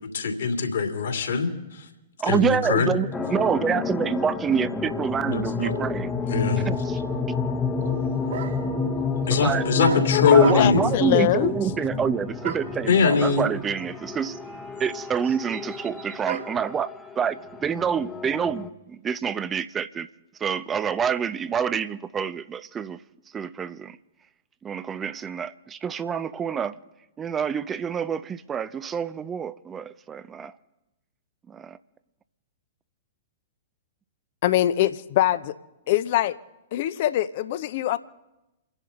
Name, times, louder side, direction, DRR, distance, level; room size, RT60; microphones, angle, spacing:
voice 1, 0.1-1.5 2.3-2.9 5.3-5.7 6.3-6.7 9.3-10.8 12.9-13.5, left 5 dB, 60° left, 2.7 m, -21 dB
voice 2, 2.2-6.1 6.6-7.0 9.4-9.6 10.3-14.4 14.8-16.9 17.2-20.1 20.4-23.0 23.3-24.0 24.6-26.8 27.2-30.5 31.5-31.8, right 7 dB, 15° right, 0.6 m, -27 dB
sound 1, 3.1-18.7, left 4 dB, 10° left, 1.1 m, -30 dB
sound 2, 7.8-7.9 8.3-8.8 9.8-10.9 12.4-12.8 13.8-13.9 14.1-16.7, right 8 dB, 55° right, 1.2 m, -35 dB
voice 3, 10.1-11.5 34.4-35.6 35.9-36.4 36.7-38.0, left 13 dB, 45° left, 0.8 m, -23 dB
29.5 x 11.0 x 3.8 m
figure-of-eight pair, 105°, 0 cm